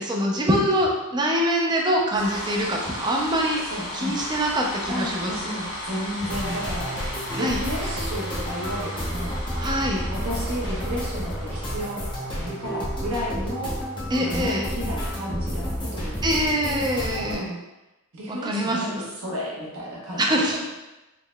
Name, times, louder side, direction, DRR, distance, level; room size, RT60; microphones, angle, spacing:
voice 1, 0.0-3.6 3.9-5.3 7.3-7.6 9.6-10.0 14.1-14.6 16.2-17.5 18.4-19.1 20.2-20.7, equal, 20° right, -1 dB, 0.4 m, -24 dB
sound 1, 2.1-16.2, left 1 dB, 50° left, 0.9 m, -36 dB
voice 2, 3.6-4.1 4.9-9.3 10.1-12.1 12.3-13.8 14.2-16.3 16.7-16.8 17.2-17.6 18.1-20.7, equal, 70° right, -4 dB, 1.0 m, -33 dB
sound 2, 6.2-17.4, equal, 20° left, 0.8 m, -30 dB
3.6 x 3.0 x 2.2 m, 1.0 s
head